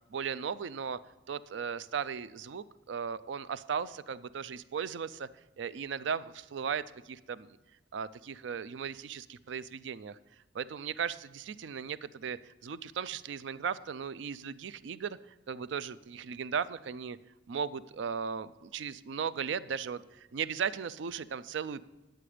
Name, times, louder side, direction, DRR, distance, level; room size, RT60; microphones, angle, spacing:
voice 1, 0.1-1.0 1.3-5.3 5.6-7.6 7.9-10.2 10.5-15.2 15.5-17.2 17.5-21.8, right 7 dB, 70° right, 16 dB, 0.4 m, -37 dB
10.0 x 7.8 x 4.9 m, 1.1 s
head